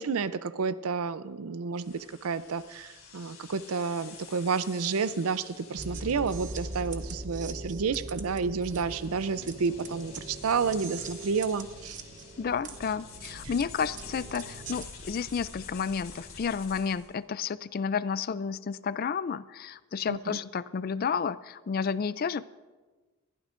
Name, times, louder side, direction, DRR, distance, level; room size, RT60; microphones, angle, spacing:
voice 1, 0.0-12.0 20.1-20.4, right 5 dB, 90° right, 15 dB, 0.5 m, -30 dB
sound 1, 1.8-17.1, left 5 dB, 75° left, 3.3 m, -49 dB
sound 2, 5.8-14.9, right 2 dB, 35° right, 1.0 m, -41 dB
voice 2, 12.4-22.5, left 6 dB, 45° left, 17 dB, 0.3 m, -31 dB
21.5 x 15.0 x 2.5 m, 1.3 s
head